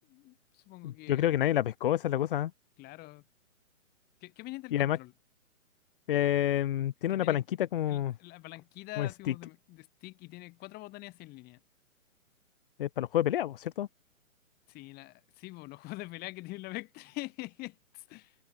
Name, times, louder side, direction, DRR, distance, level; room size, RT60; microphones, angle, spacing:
voice 1, 0.0-1.4 2.8-3.2 4.2-5.1 7.1-7.5 7.9-11.6 14.7-18.4, left 20 dB, 20° left, 7.7 m, -44 dB
voice 2, 0.8-2.5 4.7-5.0 6.1-7.4 7.7-8.1 9.0-9.1 12.8-13.9, left 12 dB, 40° left, 1.3 m, -28 dB
open air
figure-of-eight pair, 135°, 41 cm